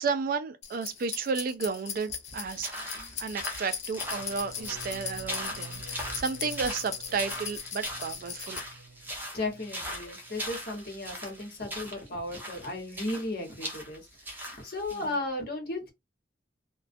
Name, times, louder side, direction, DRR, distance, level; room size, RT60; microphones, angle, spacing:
voice 1, 0.0-8.6 14.9-15.1, right 5 dB, 50° right, 0.3 m, -33 dB
sound 1, 0.6-8.6, left 7 dB, 40° left, 0.5 m, -39 dB
sound 2, 2.3-15.1, equal, 10° right, 0.6 m, -40 dB
sound 3, 3.9-9.8 10.1-10.6 10.9-11.3, right 1 dB, 80° left, 0.9 m, -49 dB
voice 2, 9.3-15.9, left 2 dB, 55° left, 1.1 m, -35 dB
2.3 x 2.2 x 2.5 m
head